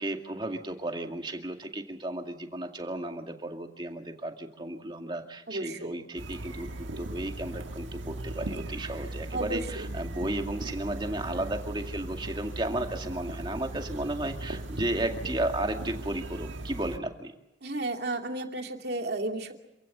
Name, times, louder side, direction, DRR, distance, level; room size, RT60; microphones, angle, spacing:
voice 1, 0.0-17.3, right 1 dB, 25° right, 4 dB, 2.2 m, -34 dB
voice 2, 5.5-5.9 9.3-9.9 17.6-19.5, right 2 dB, 60° right, 3 dB, 2.7 m, -33 dB
sound 1, 6.2-17.0, right 1 dB, 85° right, 1.5 m, -38 dB
27.5 x 16.0 x 8.1 m, 0.99 s
head